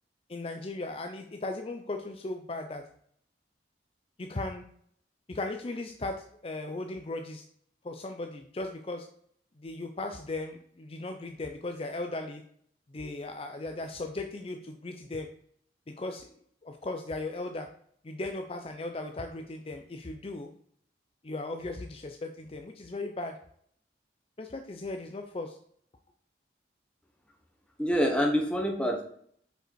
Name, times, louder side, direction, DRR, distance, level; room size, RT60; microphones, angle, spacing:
voice 1, 0.3-2.8 4.2-4.6 5.3-7.5 7.8-9.1 9.6-12.4 12.9-15.3 15.9-16.3 16.6-17.7 18.0-20.5 21.2-23.4 24.4-25.6, left 2 dB, 30° left, 5 dB, 0.5 m, -37 dB
voice 2, 27.8-29.0, equal, 5° left, 2 dB, 1.1 m, -26 dB
6.5 x 5.3 x 4.6 m, 0.64 s
head